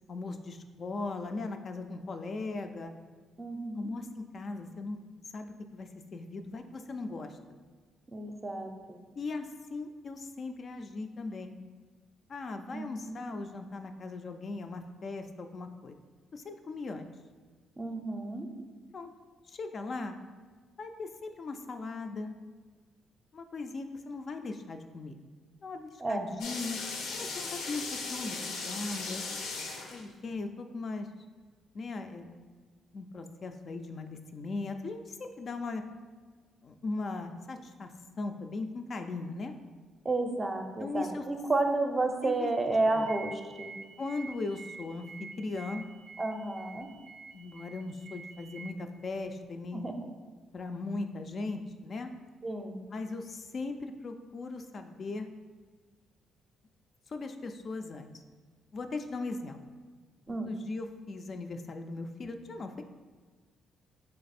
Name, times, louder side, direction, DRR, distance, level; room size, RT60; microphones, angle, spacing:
voice 1, 0.1-2.9 3.8-5.0 5.3-7.6 9.2-11.6 12.3-16.0 16.3-17.1 18.9-19.1 19.5-20.2 20.8-22.4 23.3-25.2 25.6-26.8 27.1-27.8 28.1-29.2 29.9-31.1 31.7-32.4 32.9-35.8 36.6-37.9 38.2-39.5 40.8-41.2 42.2-43.1 44.0-45.8 47.3-49.9 50.5-52.1 52.9-55.3 57.1-58.1 58.7-59.6 60.3-62.8, left 3 dB, 45° left, 6 dB, 0.3 m, -38 dB
voice 2, 3.4-3.9 8.1-9.0 12.7-13.2 17.8-18.5 26.0-26.2 40.0-43.7 46.2-46.9 49.7-50.1 52.4-52.8 60.3-60.5, right 2 dB, 25° right, 5 dB, 0.5 m, -31 dB
sound 1, 26.4-30.3, left 4 dB, 90° left, 0.6 m, -37 dB
sound 2, 42.8-48.7, right 4 dB, 85° right, 0.4 m, -48 dB
3.4 x 3.3 x 4.1 m, 1.5 s
cardioid pair, 90°, 0 cm